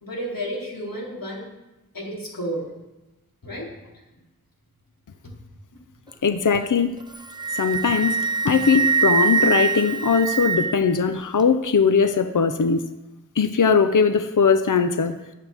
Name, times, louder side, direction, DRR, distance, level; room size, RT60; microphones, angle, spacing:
voice 1, 0.0-1.5 1.9-2.7 3.4-3.9, equal, 80° left, -3 dB, 3.5 m, -31 dB
voice 2, 6.2-7.0 7.5-8.2 8.4-12.9 13.4-15.2, left 5 dB, 65° left, 9 dB, 0.7 m, -20 dB
Wind instrument woodwind instrument, 7.0-11.0, right 6 dB, 15° right, 0.7 m, -23 dB
20.5 x 7.7 x 3.6 m, 1.0 s
wide cardioid pair, 45°, 34 cm